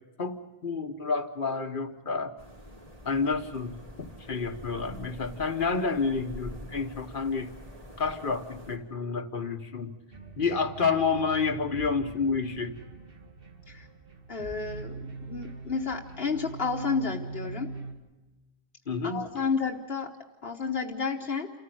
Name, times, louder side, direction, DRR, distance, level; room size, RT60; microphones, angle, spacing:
voice 1, 0.2-2.3 3.0-7.5 8.0-9.9 10.4-12.7 18.9-19.3, left 4 dB, 55° left, 7 dB, 1.3 m, -29 dB
sound 1, 2.4-8.8, equal, 35° right, 3.4 m, -46 dB
sound 2, 10.1-17.9, right 4 dB, 60° right, 2.2 m, -43 dB
voice 2, 14.3-17.7 19.0-20.1 20.4-21.5, left 5 dB, 70° left, 0 dB, 1.4 m, -31 dB
28.5 x 14.5 x 7.9 m, 1.1 s
omnidirectional pair, 1.1 m